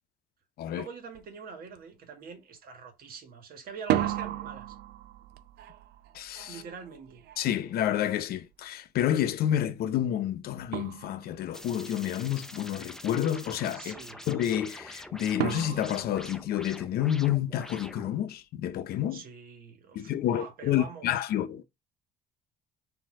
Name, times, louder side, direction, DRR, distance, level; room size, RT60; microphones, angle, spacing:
voice 1, 0.7-4.8 6.5-7.2 13.7-14.3 19.1-21.2, right 5 dB, 60° right, 1.4 m, -44 dB
sound 1, 1.1-1.3 1.7-2.2 3.7-8.5 10.2-10.3 10.7-11.6 15.4-17.1, right 12 dB, 75° right, 0.5 m, -35 dB
voice 2, 6.1-6.6 7.4-13.9 14.3-19.2 19.9-21.6, left 11 dB, 65° left, 0.6 m, -29 dB
sound 2, 11.5-18.3, left 1 dB, 5° left, 0.4 m, -45 dB
4.3 x 2.7 x 3.6 m
cardioid pair, 110°, 17 cm